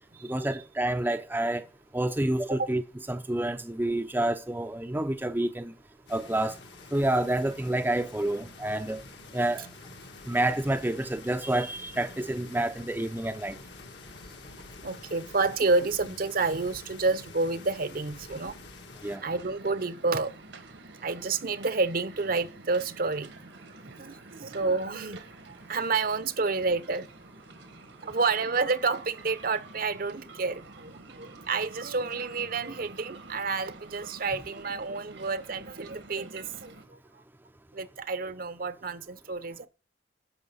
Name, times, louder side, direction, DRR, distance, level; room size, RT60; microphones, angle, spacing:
voice 1, 0.2-1.6 1.9-2.8 3.1-5.7 6.1-6.6 6.9-9.0 9.3-9.7 10.3-13.6 19.0-19.2, right 1 dB, 10° right, 0.6 m, -28 dB
sound 1, 6.1-19.2, left 3 dB, 70° left, 1.9 m, -47 dB
voice 2, 14.8-18.6 19.2-20.3 21.0-23.3 23.9-27.1 28.0-37.0 37.7-39.7, right 3 dB, 50° right, 0.8 m, -29 dB
sound 2, 19.0-36.8, right 3 dB, 80° right, 1.7 m, -49 dB
12.0 x 5.8 x 5.6 m
head